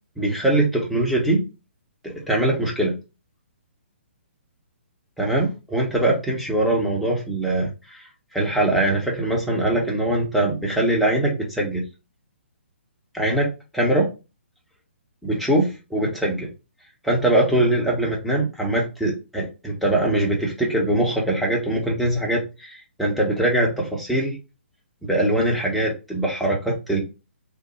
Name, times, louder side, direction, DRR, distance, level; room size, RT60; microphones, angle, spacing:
voice 1, 0.2-1.5 2.0-3.0 5.2-11.8 13.1-13.5 13.7-14.1 15.2-16.5 17.0-24.4 25.1-27.0, right 1 dB, ahead, -3 dB, 0.8 m, -22 dB
3.3 x 2.1 x 3.1 m, 0.30 s
figure-of-eight pair, 130°, 7 cm